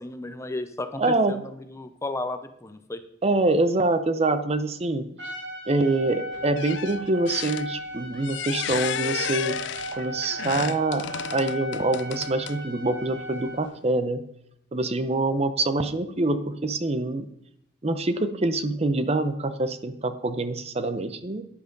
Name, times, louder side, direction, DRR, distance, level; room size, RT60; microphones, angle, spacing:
voice 1, 0.0-3.0, left 2 dB, 15° left, 9 dB, 0.6 m, -34 dB
voice 2, 0.9-1.4 3.2-5.1 5.7-9.6 9.9-14.3 14.7-17.3 17.8-21.4, right 2 dB, 35° right, 11 dB, 0.6 m, -25 dB
Trumpet, 5.2-13.6, right 1 dB, 65° right, 3.7 m, -36 dB
sound 1, 6.3-12.8 13.5-13.6, left 11 dB, 65° left, 0.3 m, -34 dB
10.5 x 10.5 x 3.9 m, 0.75 s
head